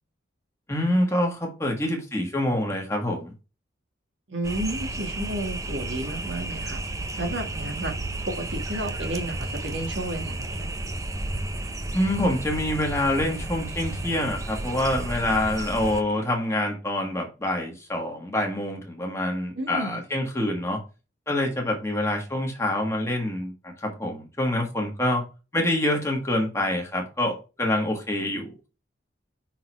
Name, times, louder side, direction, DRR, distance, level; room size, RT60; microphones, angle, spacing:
voice 1, 0.7-3.3 11.9-20.8 21.3-25.2 25.5-28.7, left 1 dB, 15° left, 1 dB, 1.5 m, -26 dB
voice 2, 4.3-6.8 7.2-7.9 8.2-10.7 19.6-20.0, right 1 dB, 70° right, 3 dB, 1.7 m, -32 dB
sound 1, 4.4-16.0, right 2 dB, 15° right, 0.5 m, -32 dB
5.8 x 3.8 x 4.5 m, 0.31 s
head